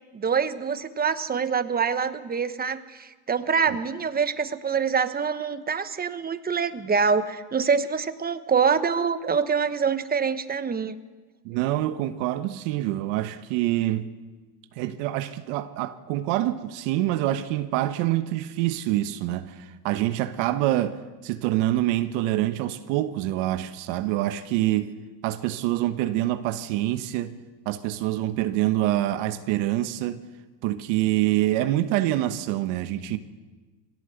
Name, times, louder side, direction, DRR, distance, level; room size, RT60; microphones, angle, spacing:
voice 1, 0.1-10.9, right 6 dB, 20° right, 1.1 m, -25 dB
voice 2, 11.4-14.1 14.7-24.9 25.2-27.4 27.6-30.2 30.6-33.2, right 14 dB, 65° right, 1.2 m, -26 dB
22.0 x 17.0 x 8.0 m
supercardioid pair, 115°, 48 cm